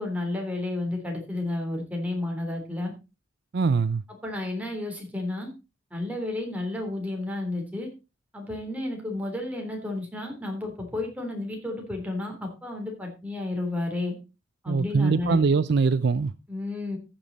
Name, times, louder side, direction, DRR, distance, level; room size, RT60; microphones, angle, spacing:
voice 1, 0.0-2.9 4.1-5.5 5.9-7.9 8.3-14.2 14.6-15.4 16.5-17.0, left 2 dB, 10° right, 3.4 m, -31 dB
voice 2, 3.5-4.0 14.7-16.3, right 4 dB, 60° right, 0.4 m, -22 dB
14.5 x 7.2 x 4.1 m
head